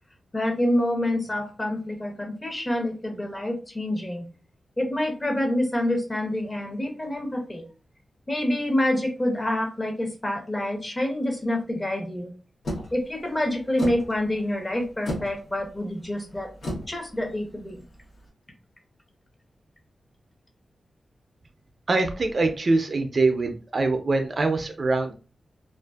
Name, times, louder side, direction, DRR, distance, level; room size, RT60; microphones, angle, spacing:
voice 1, 0.3-4.2 4.8-7.7 8.3-12.3 12.9-16.5 16.9-17.8, left 1 dB, 20° left, 3 dB, 0.6 m, -27 dB
sound 1, 12.6-18.2, equal, 75° left, 0.8 m, -36 dB
voice 2, 21.9-25.1, right 3 dB, 45° right, 6 dB, 0.3 m, -23 dB
2.5 x 2.4 x 2.2 m, 0.34 s
wide cardioid pair, 120°, 0 cm